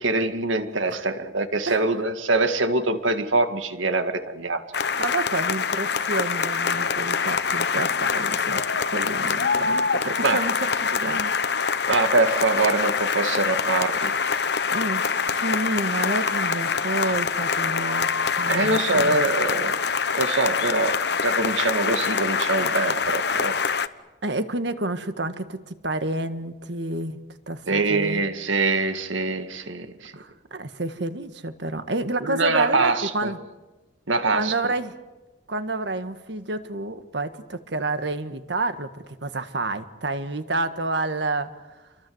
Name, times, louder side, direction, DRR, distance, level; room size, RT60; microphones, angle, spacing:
voice 1, 0.0-4.6 10.2-10.4 11.9-14.5 18.5-19.8 20.2-23.6 27.7-30.1 32.2-33.3 34.1-34.5, right 3 dB, 90° right, 8 dB, 2.0 m, -24 dB
sound 1, 4.7-23.9, left 5 dB, 60° left, 0.9 m, -25 dB
voice 2, 5.0-11.3 14.7-19.2 24.2-27.2 27.5-28.3 30.1-33.4 34.1-34.9 35.5-41.8, right 2 dB, 65° right, 10 dB, 1.6 m, -29 dB
29.0 x 23.0 x 7.9 m, 1.1 s
head